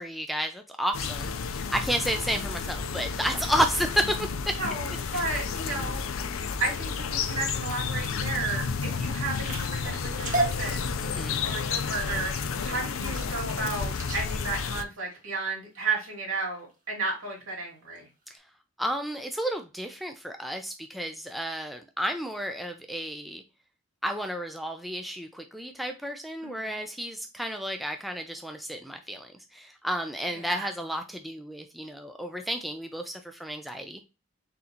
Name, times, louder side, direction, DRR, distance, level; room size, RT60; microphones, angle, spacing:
voice 1, 0.0-4.6 5.1-5.2 11.0-11.4 18.3-18.4 18.8-23.4 24.0-34.0, equal, ahead, 5 dB, 0.3 m, -32 dB
sound 1, 0.9-14.8, left 5 dB, 75° left, 0.5 m, -31 dB
voice 2, 4.6-6.0 6.6-10.9 11.4-12.3 12.6-18.1 26.4-26.8 30.3-30.7, right 3 dB, 80° right, -1 dB, 2.4 m, -33 dB
sound 2, 7.1-15.8 16.4-16.7 17.1-17.5 17.9-18.0 18.4-18.5, right 2 dB, 40° right, 1.4 m, -37 dB
4.2 x 3.8 x 2.8 m, 0.28 s
head